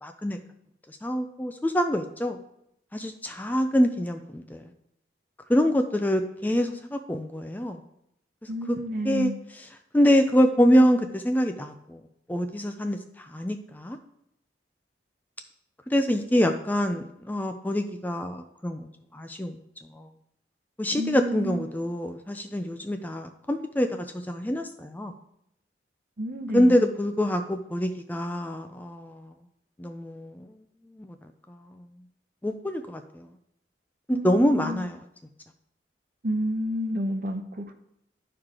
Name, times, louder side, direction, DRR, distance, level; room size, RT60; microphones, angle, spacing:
voice 1, 0.0-0.4 0.9-2.4 2.9-4.6 5.5-7.8 8.4-8.8 9.0-9.3 9.6-9.7 9.9-12.0 12.3-14.0 15.9-18.9 19.1-19.6 19.9-20.1 20.8-25.1 26.5-29.3 29.8-30.5 31.0-31.2 31.5-31.8 32.4-33.3 34.2-35.0, equal, 10° left, 6 dB, 0.4 m, -25 dB
voice 2, 8.5-9.4 20.9-21.7 26.2-26.8 34.1-34.9 36.2-37.7, right 1 dB, 50° right, 6 dB, 0.8 m, -30 dB
12.5 x 4.8 x 3.7 m, 0.77 s
head